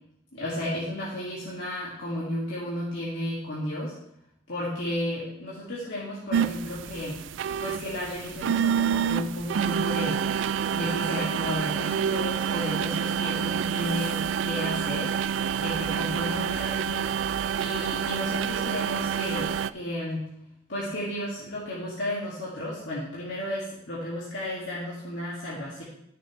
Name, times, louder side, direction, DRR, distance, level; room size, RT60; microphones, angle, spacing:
voice 1, 0.3-3.9 4.5-7.2 7.6-10.2 10.7-15.1 15.6-17.1 17.6-20.2 20.7-25.8, left 1 dB, 70° left, -7 dB, 2.3 m, -33 dB
sound 1, 6.3-19.7, right 8 dB, 75° right, 0.3 m, -28 dB
13.5 x 6.6 x 3.3 m, 0.78 s
head